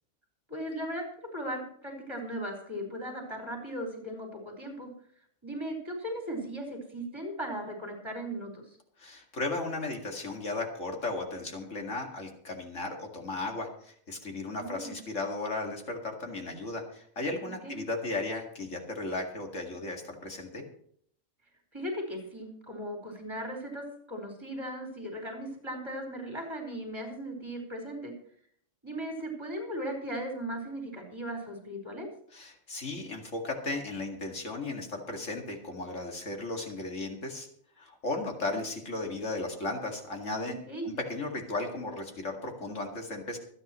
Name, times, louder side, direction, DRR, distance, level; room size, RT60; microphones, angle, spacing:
voice 1, 0.5-1.1 1.3-4.9 5.4-8.8 14.6-15.0 17.6-17.8 21.7-28.1 28.8-32.1 40.7-40.9, right 1 dB, 20° right, 1 dB, 4.8 m, -37 dB
voice 2, 9.0-20.6 32.3-37.5 37.8-40.6 40.8-43.4, left 2 dB, 80° left, 2 dB, 2.6 m, -35 dB
25.5 x 9.7 x 3.1 m, 0.63 s
omnidirectional pair, 1.3 m